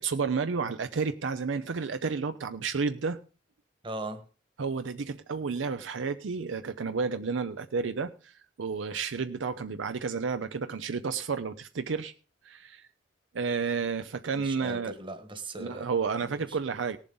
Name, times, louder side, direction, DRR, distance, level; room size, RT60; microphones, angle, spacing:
voice 1, 0.0-3.2 4.6-12.1 12.4-12.8 13.3-14.9 15.6-17.0, right 5 dB, 85° right, 0.6 m, -31 dB
voice 2, 3.8-4.2 14.3-15.9 16.2-16.6, right 2 dB, 25° right, 1.3 m, -39 dB
18.0 x 7.4 x 3.9 m
head